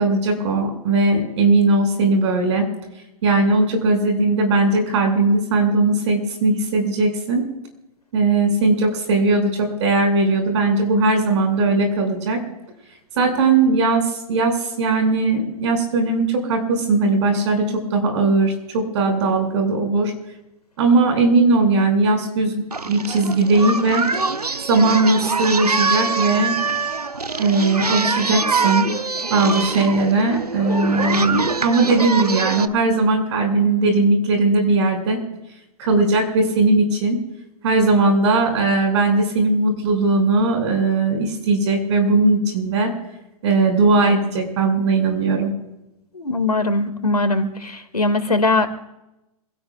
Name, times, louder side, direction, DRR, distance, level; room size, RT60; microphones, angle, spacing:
voice 1, 0.0-2.7 3.2-7.4 8.1-12.4 13.2-20.1 20.8-24.0 24.7-26.5 27.4-28.9 29.3-35.2 35.8-37.2 37.6-42.9 43.4-45.5, right 3 dB, 50° right, 4 dB, 6.0 m, -18 dB
Singing, 22.7-32.7, right 4 dB, 90° right, 0.8 m, -24 dB
voice 2, 46.1-48.7, left 2 dB, 85° left, 9 dB, 2.2 m, -20 dB
27.5 x 17.0 x 2.4 m, 0.91 s
figure-of-eight pair, 115°, 19 cm